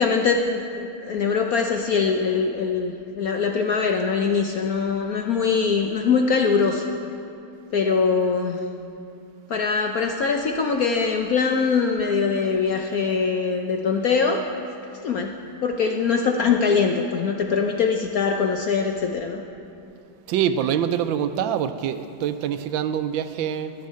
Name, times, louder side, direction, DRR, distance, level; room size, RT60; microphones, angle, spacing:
voice 1, 0.0-6.9 7.7-8.6 9.5-14.4 15.0-15.3 15.6-19.4, left 5 dB, 65° left, 3 dB, 0.9 m, -22 dB
voice 2, 20.3-23.7, right 9 dB, 80° right, 11 dB, 1.3 m, -25 dB
14.0 x 6.4 x 9.4 m, 2.6 s
omnidirectional pair, 2.2 m